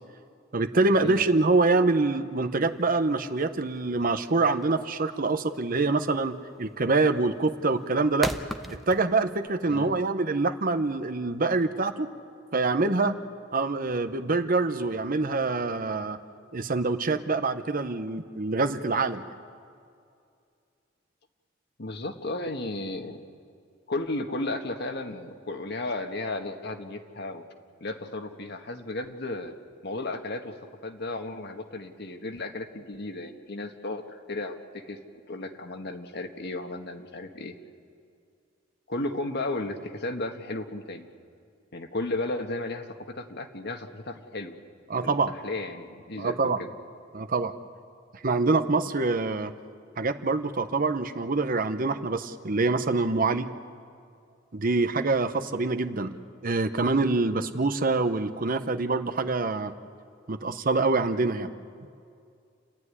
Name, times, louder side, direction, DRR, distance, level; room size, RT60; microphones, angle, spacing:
voice 1, 0.5-8.3 8.9-12.1 12.5-13.2 13.5-16.2 16.5-19.2 44.9-45.3 46.2-46.6 47.1-47.5 48.2-49.5 50.0-53.5 54.5-56.2 56.4-59.7 60.3-61.5, right 3 dB, 50° right, 9 dB, 0.9 m, -25 dB
sound 1, 2.7-9.5, equal, ahead, 0.8 m, -38 dB
voice 2, 9.7-10.0 21.8-23.2 23.9-27.4 27.8-29.6 29.8-30.6 30.8-35.0 35.3-37.5 38.9-41.1 41.7-44.5 45.0-46.7, left 2 dB, 60° left, 5 dB, 1.6 m, -34 dB
29.5 x 12.5 x 9.7 m, 2.4 s
head